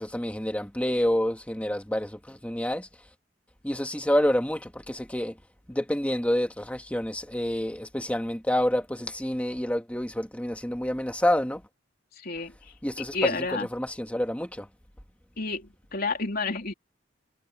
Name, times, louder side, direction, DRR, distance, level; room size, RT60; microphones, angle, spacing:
voice 1, 0.0-2.9 3.6-5.3 5.7-11.6 12.8-14.7, left 1 dB, 5° left, 2.0 m, -28 dB
voice 2, 12.2-12.5 13.1-13.7 15.4-16.7, left 3 dB, 50° left, 3.6 m, -30 dB
head